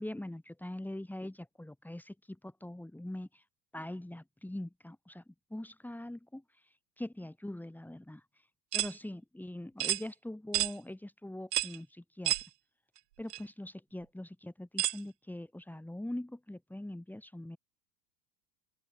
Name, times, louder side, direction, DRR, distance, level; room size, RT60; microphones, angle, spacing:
voice 1, 0.0-3.4 3.7-8.2 8.7-12.4 13.2-17.6, left 1 dB, 5° left, 6.1 m, -43 dB
sound 1, 8.7-8.9 9.8-10.0 10.5-10.7 11.5-11.8 12.2-12.5 13.3-13.4 14.8-15.0, right 15 dB, 70° right, 3.0 m, -30 dB
open air
hypercardioid pair, 105°, 49 cm